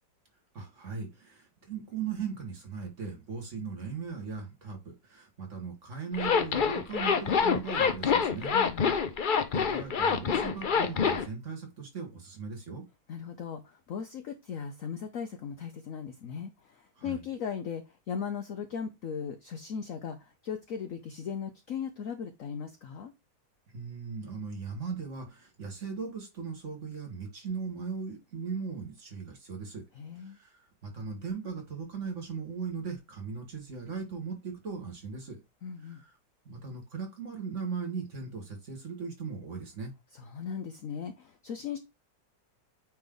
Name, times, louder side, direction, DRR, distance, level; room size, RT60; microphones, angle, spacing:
voice 1, 0.5-8.6 9.5-12.9 17.0-17.2 23.7-29.8 30.2-35.4 35.8-36.1 36.5-39.9, right 5 dB, 40° right, 2.3 m, -38 dB
Zipper (clothing), 6.1-11.3, left 6 dB, 85° left, 0.4 m, -26 dB
voice 2, 8.5-8.9 13.1-23.1 29.9-30.4 35.6-36.0 40.1-41.8, left 7 dB, 60° left, 1.0 m, -38 dB
8.7 x 3.3 x 3.9 m
omnidirectional pair, 1.9 m